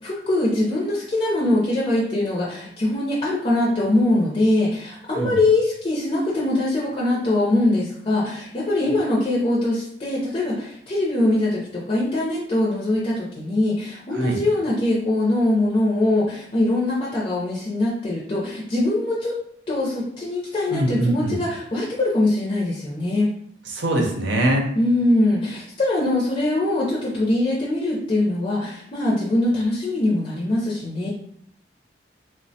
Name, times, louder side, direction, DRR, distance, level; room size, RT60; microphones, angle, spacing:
voice 1, 0.0-19.4 19.7-23.3 24.8-31.1, left 1 dB, 35° left, -5 dB, 0.5 m, -22 dB
voice 2, 20.7-21.4 23.6-24.7, right 1 dB, 90° right, 1 dB, 0.7 m, -22 dB
3.2 x 2.1 x 2.6 m, 0.68 s
head